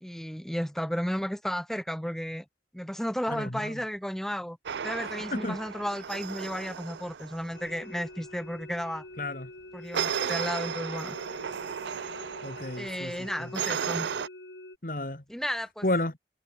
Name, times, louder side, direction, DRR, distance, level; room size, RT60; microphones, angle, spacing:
voice 1, 0.0-2.4 2.7-4.6 4.8-9.0 9.7-11.2 12.8-14.1 15.3-15.9, equal, ahead, 2.2 m, -33 dB
voice 2, 3.3-3.8 5.3-5.6 9.2-9.5 12.4-13.5 14.8-15.2 15.8-16.1, left 1 dB, 50° left, 2.1 m, -32 dB
sound 1, 4.7-7.8 9.9-14.3, right 7 dB, 80° right, 0.5 m, -34 dB
sound 2, 7.5-14.8, left 1 dB, 85° left, 6.8 m, -46 dB
head